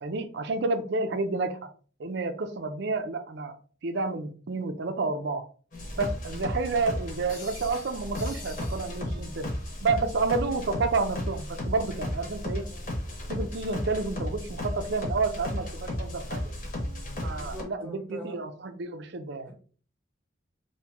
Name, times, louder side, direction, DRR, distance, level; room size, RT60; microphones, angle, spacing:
voice 1, 0.0-1.6 2.0-3.5 3.8-5.4 6.0-9.5 9.8-12.7 13.3-16.5 17.2-19.5, right 3 dB, 60° right, 8 dB, 0.5 m, -30 dB
sound 1, 5.7-17.6, left 1 dB, 45° left, 1.0 m, -34 dB
voice 2, 17.2-18.4, right 1 dB, 5° left, -1 dB, 0.9 m, -42 dB
2.9 x 2.6 x 3.5 m, 0.42 s
head